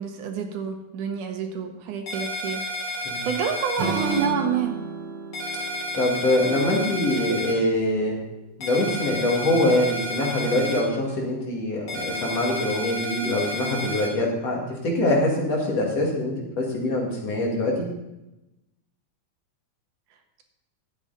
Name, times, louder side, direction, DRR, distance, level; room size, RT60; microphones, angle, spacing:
voice 1, 0.0-4.7, right 6 dB, 80° right, 4 dB, 2.6 m, -29 dB
sound 1, 2.1-4.3 5.3-7.5 8.6-10.8 11.9-14.1, left 1 dB, 35° left, 2.1 m, -31 dB
Strum, 3.8-8.0, right 5 dB, 60° right, 1.3 m, -33 dB
voice 2, 5.9-8.2 8.6-17.9, left 1 dB, 55° left, -2 dB, 3.2 m, -24 dB
12.0 x 8.6 x 4.0 m, 0.95 s
omnidirectional pair, 3.5 m